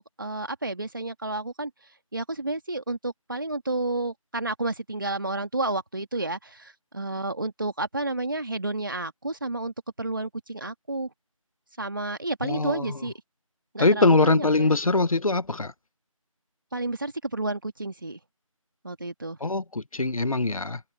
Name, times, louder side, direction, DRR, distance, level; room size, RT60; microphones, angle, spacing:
voice 1, 0.0-1.7 2.1-11.1 11.8-13.1 13.7-14.8 16.7-18.2 18.8-19.4, right 2 dB, 35° right, 2.3 m, -31 dB
voice 2, 12.4-13.0 13.8-15.7 19.4-20.8, left 3 dB, 75° left, 1.2 m, -22 dB
figure-of-eight pair, 180°, 18 cm